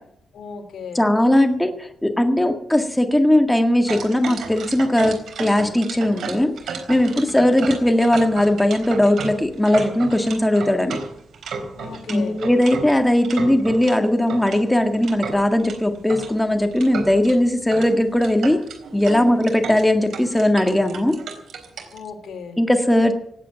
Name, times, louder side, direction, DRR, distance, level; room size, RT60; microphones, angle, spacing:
voice 1, 0.3-1.1 7.0-7.4 11.8-12.4 19.0-19.4 21.9-22.6, left 5 dB, 75° left, 4 dB, 3.6 m, -35 dB
voice 2, 1.0-6.5 6.9-11.0 12.1-18.6 18.9-21.2 22.6-23.1, left 1 dB, 5° left, 5 dB, 1.7 m, -18 dB
sound 1, 3.9-14.0 14.3-16.3 16.7-17.4 17.7-17.9 18.1-22.0, right 5 dB, 85° right, 3.8 m, -33 dB
18.0 x 8.3 x 9.1 m, 0.69 s
cardioid pair, 105°, 0 cm